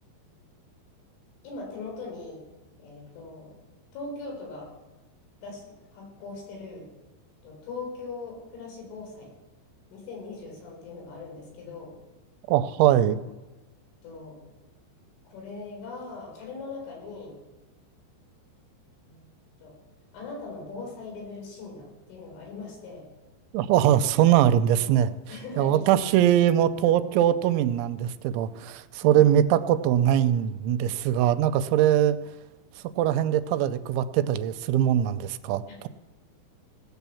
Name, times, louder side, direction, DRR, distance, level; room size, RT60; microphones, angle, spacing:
voice 1, 1.4-2.5 2.8-3.5 3.9-4.7 5.4-6.9 7.4-9.3 9.9-11.9 14.0-14.4 15.2-17.4 19.0-19.3 19.6-19.7 20.1-23.1 25.3-25.8 29.0-29.2 35.7-35.9, left 3 dB, 85° left, -1 dB, 6.8 m, -40 dB
voice 2, 12.5-13.2 23.5-25.1 25.6-32.2 33.0-35.9, right 11 dB, 85° right, 11 dB, 3.0 m, -22 dB
17.0 x 9.2 x 7.0 m, 1.1 s
omnidirectional pair, 5.5 m